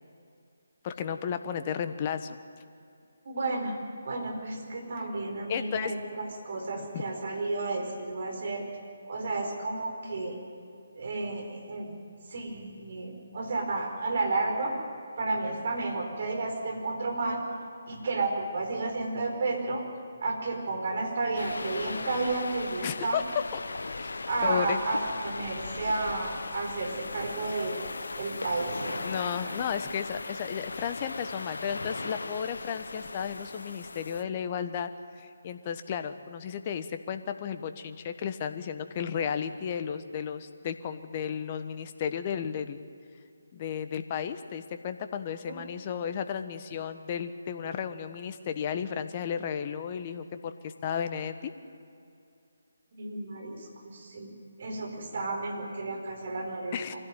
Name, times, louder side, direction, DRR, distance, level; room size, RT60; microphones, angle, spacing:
voice 1, 0.8-2.4 5.0-5.1 5.5-6.0 6.8-7.0 22.8-23.3 23.5-23.6 24.0-24.1 24.4-24.8 29.0-34.9 35.2-42.8 43.5-51.5 56.7-56.9, left 8 dB, 30° left, 9 dB, 1.2 m, -33 dB
voice 2, 3.2-3.8 4.0-8.7 9.1-10.4 11.0-11.9 12.3-14.7 15.2-17.4 17.9-19.8 20.2-23.2 24.3-27.8 28.2-29.0 29.4-29.5 45.5-45.6 52.9-56.8, right 3 dB, 50° right, 3 dB, 4.8 m, -32 dB
sound 1, 21.3-34.2, left 3 dB, 70° left, 1.0 m, -38 dB
24.0 x 16.5 x 9.1 m, 2.5 s
figure-of-eight pair, 150°, 0 cm